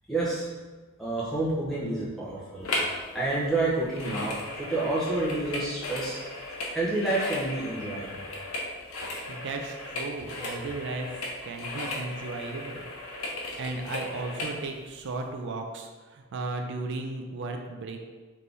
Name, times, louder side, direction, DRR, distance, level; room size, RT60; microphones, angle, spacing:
voice 1, 0.1-0.5 1.0-6.2 6.7-8.2, right 2 dB, ahead, -9 dB, 1.1 m, -29 dB
sound 1, 2.6-3.0 3.3-14.6 15.1-15.2, left 2 dB, 65° left, 0.8 m, -36 dB
voice 2, 9.3-12.8 13.6-18.0, right 3 dB, 55° right, 4 dB, 0.4 m, -35 dB
3.5 x 3.2 x 4.0 m, 1.4 s
head